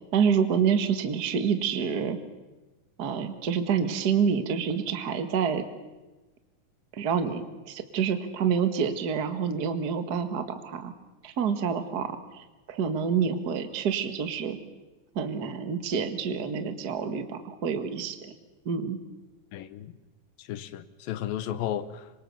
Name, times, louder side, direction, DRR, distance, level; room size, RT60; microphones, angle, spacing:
voice 1, 0.1-2.2 3.0-5.7 6.9-10.9 11.2-14.6 15.1-18.3 18.6-19.0, right 6 dB, 40° right, 9 dB, 1.5 m, -27 dB
voice 2, 19.5-19.9 20.4-22.1, left 11 dB, 80° left, 12 dB, 2.8 m, -34 dB
26.0 x 24.5 x 7.0 m, 1.1 s
omnidirectional pair, 4.0 m